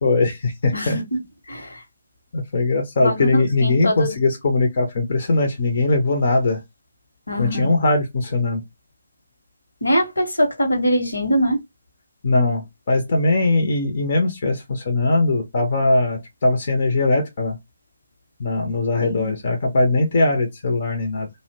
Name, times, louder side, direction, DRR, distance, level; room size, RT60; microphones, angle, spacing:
voice 1, 0.0-1.0 2.3-6.6 7.4-8.6 12.2-17.6 18.4-21.3, left 2 dB, 40° left, 0.6 m, -20 dB
voice 2, 1.5-1.8 3.0-4.2 7.3-7.7 9.8-11.6 19.0-19.3, equal, 70° left, 0.9 m, -22 dB
2.7 x 2.1 x 2.7 m
figure-of-eight pair, 140°, 0 cm